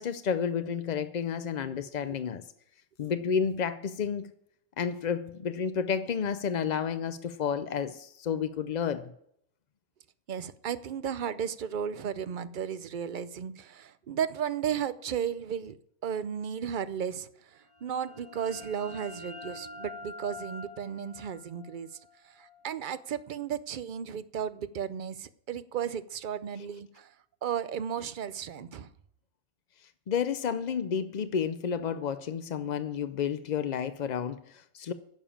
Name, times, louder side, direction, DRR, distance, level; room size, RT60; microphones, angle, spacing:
voice 1, 0.0-2.4 3.0-4.3 4.8-9.1 30.1-34.9, left 7 dB, 65° left, 0.4 m, -31 dB
voice 2, 1.6-2.2 3.0-3.1 10.3-15.8 16.0-21.9 22.2-27.1 27.4-28.9, right 8 dB, 50° right, 0.6 m, -34 dB
sound 1, 17.7-23.2, left 2 dB, 25° left, 2.4 m, -46 dB
10.5 x 7.1 x 8.7 m
omnidirectional pair, 1.4 m